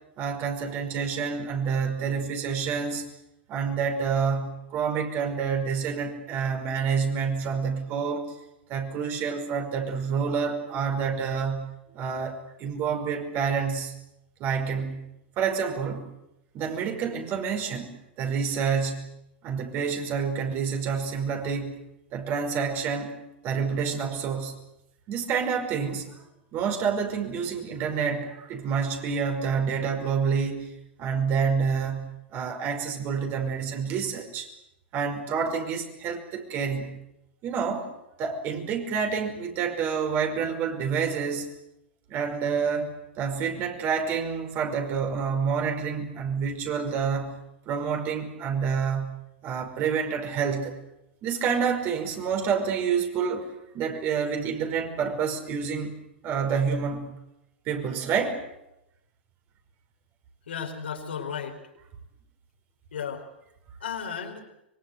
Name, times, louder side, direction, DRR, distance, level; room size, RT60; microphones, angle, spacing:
voice 1, 0.2-3.0 3.5-8.3 8.7-11.7 11.9-13.9 14.4-15.1 15.4-16.1 16.5-17.9 18.2-19.1 19.4-21.7 22.1-23.2 23.4-24.6 25.1-26.1 26.5-30.7 31.0-34.5 34.9-37.0 37.4-37.9 38.2-41.5 42.1-47.4 47.7-49.1 49.4-50.8 51.2-53.5 53.7-57.1 57.7-58.4, right 6 dB, 35° right, 4 dB, 5.3 m, -28 dB
voice 2, 60.5-61.6 62.9-63.3 63.8-64.4, left 7 dB, 70° left, 3 dB, 4.9 m, -34 dB
25.0 x 23.0 x 8.0 m, 0.86 s
figure-of-eight pair, 100°, 6 cm